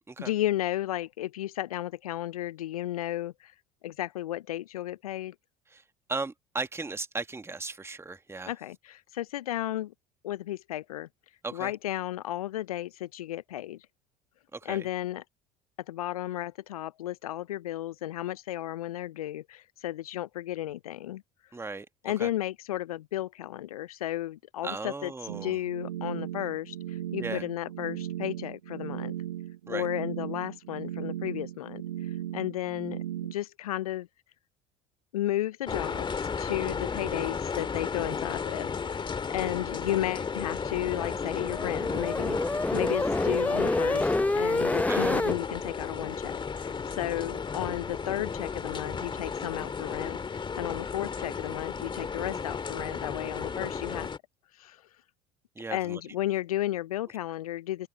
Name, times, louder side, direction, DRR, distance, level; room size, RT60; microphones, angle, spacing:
voice 1, 0.2-3.5 3.8-5.3 8.5-9.9 10.2-11.1 11.5-13.9 14.6-15.2 15.9-21.2 22.0-29.1 29.7-33.0 33.3-34.1 35.1-54.1 54.5-54.8 55.7-57.9, left 14 dB, 75° left, 0.7 m, -33 dB
voice 2, 6.1-8.5 11.4-11.7 14.5-14.9 21.5-21.9 22.2-22.3 24.6-25.6 27.2-27.4 29.7-29.9 37.0-37.1 44.9-45.2 55.6-56.0, right 3 dB, 15° right, 1.6 m, -36 dB
sound 1, 25.3-33.3, right 12 dB, 75° right, 1.0 m, -37 dB
sound 2, 35.7-54.2, left 5 dB, 25° left, 2.3 m, -34 dB
sound 3, 40.7-45.4, left 2 dB, 10° left, 0.8 m, -28 dB
open air
figure-of-eight pair, 65°, 19 cm